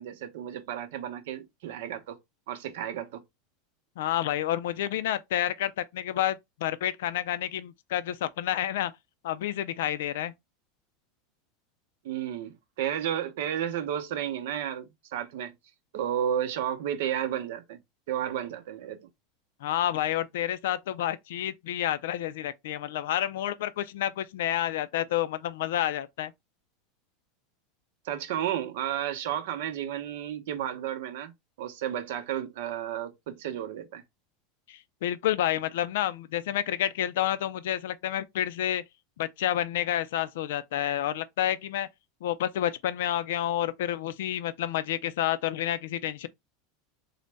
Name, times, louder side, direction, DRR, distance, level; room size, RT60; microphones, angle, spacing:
voice 1, 0.0-2.2 2.5-3.2 12.0-15.5 15.9-17.8 18.1-19.1 28.0-31.3 31.6-34.0, right 10 dB, 75° right, 0.7 m, -32 dB
voice 2, 4.0-8.9 9.2-10.3 19.6-26.3 34.7-38.8 39.2-41.9 42.2-46.3, left 12 dB, 80° left, 0.4 m, -29 dB
3.9 x 2.1 x 3.3 m
supercardioid pair, 150°, 0 cm